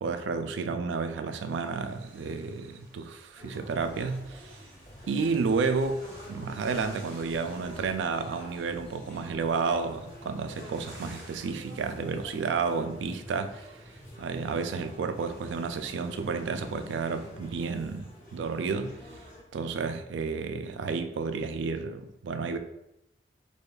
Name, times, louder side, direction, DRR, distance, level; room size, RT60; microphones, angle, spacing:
voice 1, 0.0-4.6 5.1-13.7 14.2-19.0 19.5-22.6, right 4 dB, 90° right, 0.3 m, -31 dB
sound 1, 1.3-17.3, right 1 dB, 20° right, 1.4 m, -56 dB
sound 2, 3.4-19.4, left 1 dB, 45° left, 0.8 m, -47 dB
sound 3, 3.7-9.5, equal, 5° left, 0.6 m, -55 dB
4.9 x 2.3 x 2.3 m
head